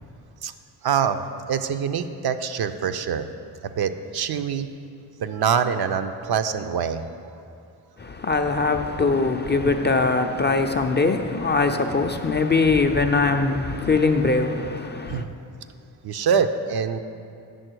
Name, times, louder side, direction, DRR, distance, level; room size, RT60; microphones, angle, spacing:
voice 1, 0.8-1.2 1.5-3.3 3.6-4.7 5.2-7.0 15.1-15.3 16.0-17.0, right 7 dB, 50° right, 0.5 m, -24 dB
voice 2, 8.0-15.3, left 3 dB, 25° left, 0.4 m, -22 dB
7.8 x 5.9 x 4.6 m
supercardioid pair, 50°, 49 cm